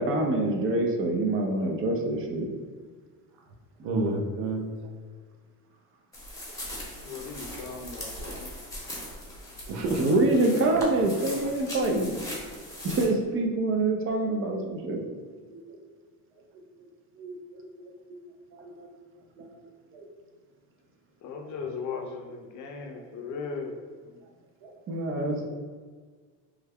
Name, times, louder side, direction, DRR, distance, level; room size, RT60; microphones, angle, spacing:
voice 1, 0.0-2.5 10.0-12.2 12.8-15.0 24.9-25.5, right 2 dB, 35° right, 2 dB, 0.5 m, -25 dB
voice 2, 3.8-4.7 8.0-8.4 9.7-10.2 11.4-11.5 11.8-12.0 15.5-15.8 17.2-17.6 18.5-18.9 19.4-19.5 19.9-20.0 21.6-21.7 22.3-22.4 23.4-23.5, right 2 dB, 80° right, 1 dB, 0.8 m, -33 dB
sound 1, 6.1-13.1, left 1 dB, 10° left, 0.9 m, -40 dB
voice 3, 7.0-8.5 21.2-23.8 24.0-24.2, left 5 dB, 50° left, 3 dB, 0.5 m, -37 dB
3.4 x 2.2 x 3.4 m, 1.5 s
cardioid pair, 125°, 39 cm